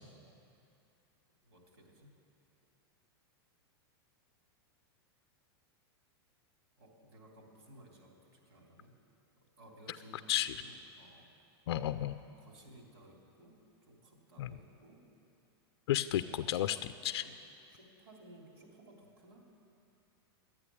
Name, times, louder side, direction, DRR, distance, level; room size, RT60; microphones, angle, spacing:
voice 1, 1.4-2.1 6.8-8.9 9.6-11.3 12.3-13.6 13.9-15.0 16.2-16.9 17.2-17.3 17.7-19.5, right 1 dB, 80° right, 0 dB, 3.4 m, -58 dB
voice 2, 11.7-12.2 14.4-14.5 15.9-17.2, left 12 dB, 75° left, 12 dB, 0.4 m, -32 dB
12.5 x 9.0 x 9.7 m, 2.6 s
supercardioid pair, 175°, 13 cm